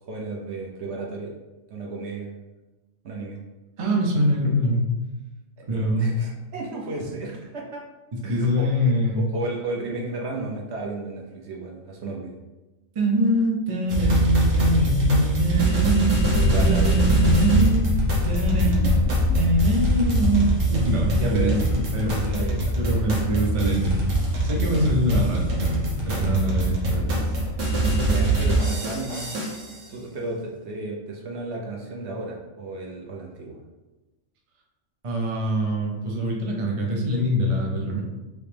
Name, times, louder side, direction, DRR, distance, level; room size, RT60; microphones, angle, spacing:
voice 1, 0.1-1.3 1.7-2.3 3.0-3.4 5.7-7.8 8.2-8.7 9.2-12.4 16.3-17.0 19.1-19.4 21.2-21.6 22.2-23.0 28.0-29.3 29.9-33.6, right 3 dB, 60° right, -1 dB, 0.8 m, -33 dB
voice 2, 3.8-4.8 5.7-6.1 8.1-9.2 12.9-16.2 16.5-18.0 18.2-18.9 19.3-22.2 22.8-27.5 35.0-38.0, equal, 40° right, -1 dB, 0.4 m, -23 dB
sound 1, 13.9-29.8, right 2 dB, 90° right, 1.4 m, -24 dB
sound 2, 16.1-28.1, left 4 dB, 80° left, 1.1 m, -27 dB
3.2 x 2.9 x 3.3 m, 1.1 s
omnidirectional pair, 1.5 m